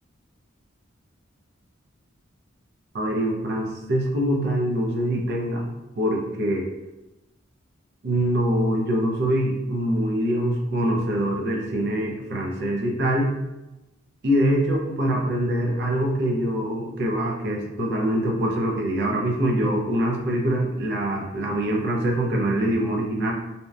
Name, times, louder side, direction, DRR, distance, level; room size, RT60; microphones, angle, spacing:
voice 1, 2.9-6.7 8.0-13.3 14.2-23.3, right 1 dB, 60° right, 0 dB, 0.5 m, -24 dB
2.7 x 2.1 x 2.2 m, 1.0 s
head